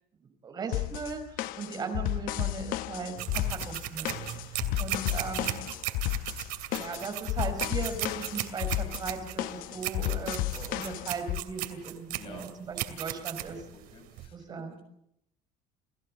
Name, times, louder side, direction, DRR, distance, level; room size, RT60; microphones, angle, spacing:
voice 1, 0.4-4.2 4.5-5.6 6.7-13.6 14.3-14.8, right 4 dB, 30° right, 7 dB, 4.3 m, -38 dB
sound 1, 0.7-11.4, left 15 dB, 70° left, 0.9 m, -33 dB
sound 2, 3.2-14.3, right 15 dB, 85° right, 2.5 m, -36 dB
voice 2, 12.1-12.5 13.7-14.8, left 3 dB, 40° left, 4 dB, 6.9 m, -50 dB
29.5 x 17.5 x 7.5 m, 0.79 s
cardioid pair, 170°, 15 cm